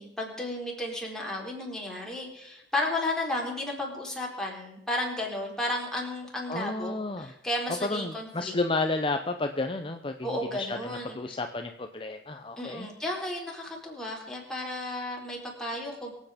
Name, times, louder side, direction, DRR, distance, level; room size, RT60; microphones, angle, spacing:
voice 1, 0.0-8.5 10.2-11.2 12.6-16.1, left 1 dB, 5° left, -2 dB, 4.1 m, -33 dB
voice 2, 6.5-7.3 7.8-12.9, left 2 dB, 30° left, 6 dB, 0.8 m, -32 dB
24.0 x 8.5 x 5.2 m, 0.86 s
head